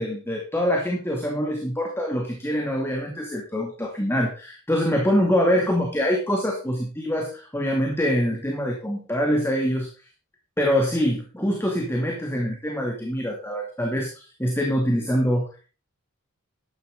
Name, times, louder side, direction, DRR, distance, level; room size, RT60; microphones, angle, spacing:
voice 1, 0.0-9.9 10.6-15.4, equal, 10° left, 0 dB, 2.5 m, -24 dB
12.5 x 11.0 x 3.9 m, 0.35 s
head